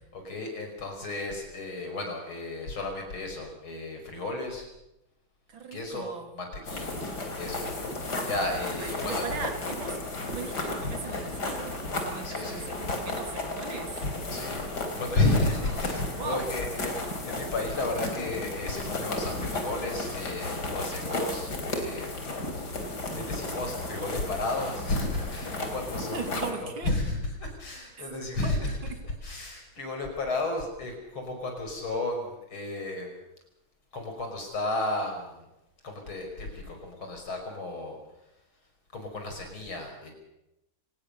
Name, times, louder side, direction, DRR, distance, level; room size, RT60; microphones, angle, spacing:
voice 1, 0.1-4.6 5.7-6.1 6.4-6.9 7.4-7.9 8.2-9.3 12.2-12.6 14.3-14.6 14.9-17.0 17.3-22.1 22.5-22.7 23.1-26.3 26.6-28.8 29.2-33.1 33.9-35.4 35.8-38.0 38.9-40.1, left 2 dB, 80° left, 3 dB, 6.1 m, -33 dB
voice 2, 5.5-6.3 8.8-10.0 10.3-13.9 15.6-15.8 16.1-16.6 17.0-17.2 25.9-26.9 28.4-28.6 28.9-29.1, right 5 dB, 75° right, 6 dB, 3.6 m, -38 dB
sound 1, 6.6-26.5, left 2 dB, 50° left, 4.0 m, -34 dB
27.5 x 18.5 x 6.7 m, 0.90 s
omnidirectional pair, 2.2 m